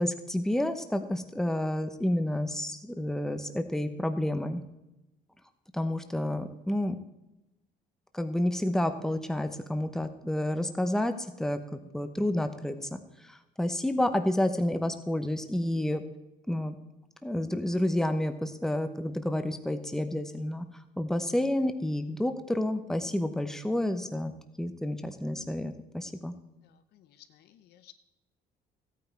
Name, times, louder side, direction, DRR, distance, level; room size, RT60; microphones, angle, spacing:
voice 1, 0.0-4.6 5.7-7.0 8.1-13.0 13.3-16.0 16.5-16.8 17.2-20.6 21.0-24.3 24.6-26.3, left 1 dB, 5° left, 8 dB, 0.9 m, -30 dB
voice 2, 26.5-27.9, left 12 dB, 75° left, 11 dB, 0.9 m, -57 dB
13.5 x 9.2 x 4.6 m, 0.95 s
cardioid pair, 110°, 17 cm